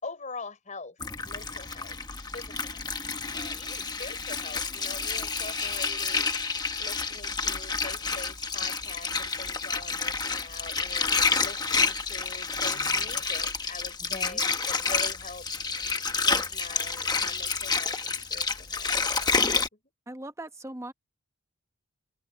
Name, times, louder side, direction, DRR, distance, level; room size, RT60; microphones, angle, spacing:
voice 1, 0.0-2.0 2.3-2.8 3.3-15.5 16.2-18.9 19.2-19.4, left 3 dB, 35° left, 5.2 m, -44 dB
Water, 1.0-19.7, left 4 dB, 20° left, 1.1 m, -29 dB
voice 2, 14.0-14.4 20.1-20.9, right 1 dB, 15° right, 1.2 m, -40 dB
open air
head